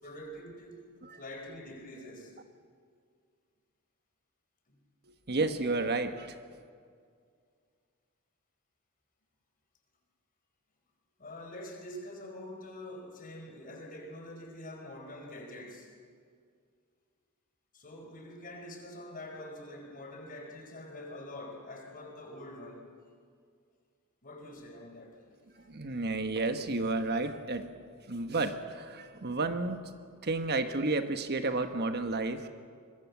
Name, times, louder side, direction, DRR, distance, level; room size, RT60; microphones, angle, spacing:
voice 1, 0.0-0.9 1.1-2.3 4.7-4.8 11.2-15.9 17.7-22.9 24.2-25.2 28.2-28.3 29.0-29.1, left 1 dB, 40° left, 3 dB, 4.9 m, -45 dB
voice 2, 5.1-6.4 25.6-27.7 28.1-29.8 30.2-32.5, right 3 dB, 50° right, 8 dB, 1.2 m, -31 dB
24.5 x 21.5 x 7.2 m, 2.1 s
head